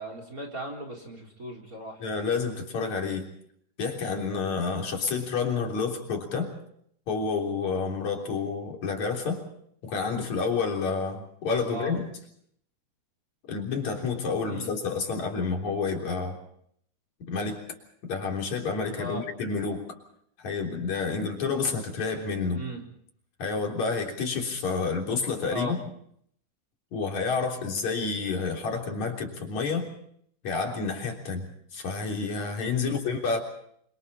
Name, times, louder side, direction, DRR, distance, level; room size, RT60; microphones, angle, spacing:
voice 1, 0.0-2.0 11.7-12.0 14.4-14.7 19.0-19.2 22.5-22.8 25.5-25.8 32.8-33.0, right 1 dB, 25° right, 3 dB, 4.3 m, -37 dB
voice 2, 2.0-3.3 3.8-6.5 7.1-9.4 9.8-12.1 13.5-16.4 17.3-17.6 18.0-19.9 20.4-22.6 23.4-25.8 26.9-29.9 30.4-31.4 31.7-33.4, left 4 dB, 70° left, 1 dB, 4.8 m, -29 dB
29.5 x 24.5 x 4.3 m, 0.67 s
omnidirectional pair, 3.4 m